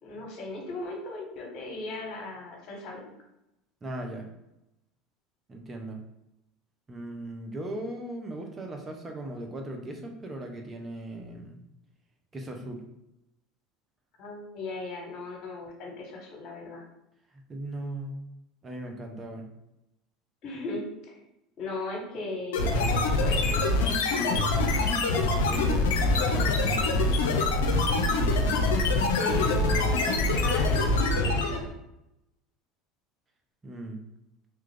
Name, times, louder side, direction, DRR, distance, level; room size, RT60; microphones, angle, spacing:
voice 1, 0.0-3.1 14.2-16.8 20.4-21.2 21.6-24.7 25.7-26.0 29.2-31.7, left 2 dB, 55° left, -1 dB, 1.3 m, -37 dB
voice 2, 3.8-4.3 5.5-6.0 6.9-11.6 12.3-12.8 17.3-18.2 18.6-19.5 25.4-27.1 33.6-34.0, right 1 dB, 25° right, 3 dB, 0.7 m, -38 dB
sound 1, 22.5-31.7, left 2 dB, 85° left, 0.5 m, -24 dB
3.1 x 2.4 x 3.4 m, 0.89 s
hypercardioid pair, 85°, 0 cm